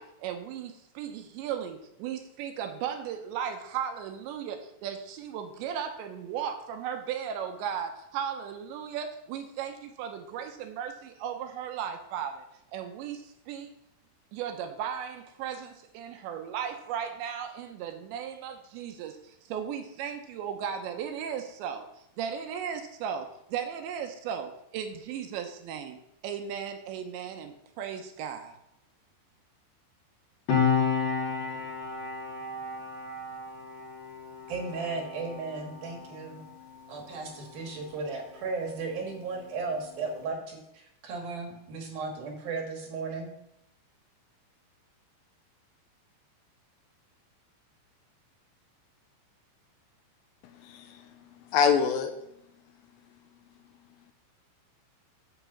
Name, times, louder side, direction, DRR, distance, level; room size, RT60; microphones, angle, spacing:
voice 1, 0.0-12.5 12.7-13.7 14.3-21.9 22.2-28.5, right 8 dB, 75° right, 6 dB, 3.0 m, -36 dB
Piano, 30.5-37.5 37.8-38.0, left 6 dB, 60° left, 4.0 m, -32 dB
voice 2, 34.5-36.5 36.9-43.3, right 4 dB, 60° right, 2 dB, 2.9 m, -35 dB
voice 3, 50.4-52.1, left 7 dB, 80° left, 6 dB, 2.9 m, -27 dB
9.3 x 6.1 x 7.1 m, 0.80 s
omnidirectional pair, 5.4 m